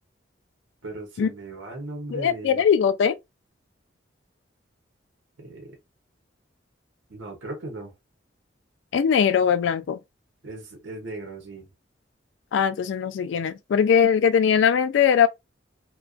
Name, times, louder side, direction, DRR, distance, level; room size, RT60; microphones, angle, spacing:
voice 1, 0.8-2.6 5.4-5.8 7.1-7.9 10.4-11.7, right 2 dB, 80° right, 0.8 m, -37 dB
voice 2, 2.1-3.1 8.9-10.0 12.5-15.3, left 7 dB, 70° left, 0.3 m, -20 dB
2.4 x 2.3 x 2.3 m
head